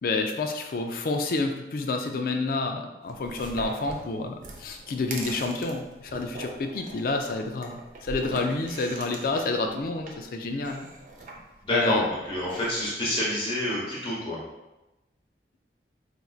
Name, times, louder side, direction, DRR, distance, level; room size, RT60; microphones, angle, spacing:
voice 1, 0.0-10.9 11.7-12.0, left 3 dB, 55° left, 4 dB, 0.4 m, -29 dB
sound 1, 3.1-12.9, right 2 dB, 45° right, 0.5 m, -42 dB
voice 2, 11.6-14.4, left 1 dB, 30° left, -6 dB, 1.0 m, -28 dB
4.3 x 2.5 x 2.3 m, 1.0 s
head